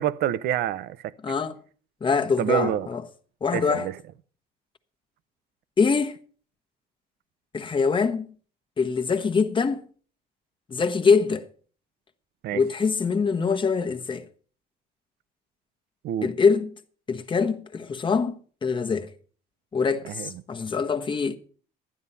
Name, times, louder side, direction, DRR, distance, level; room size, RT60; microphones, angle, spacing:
voice 1, 0.0-1.1 2.4-2.9 3.5-3.9 12.4-12.6 16.0-16.3 20.0-20.3, right 11 dB, 70° right, 0.7 m, -27 dB
voice 2, 1.2-1.6 2.0-3.0 3.4-3.9 5.8-6.2 7.5-8.3 8.8-9.8 10.7-11.5 12.5-14.2 16.2-16.7 17.1-19.1 19.7-21.4, left 5 dB, 30° left, 1.1 m, -24 dB
12.5 x 9.6 x 5.5 m
cardioid pair, 110°, 17 cm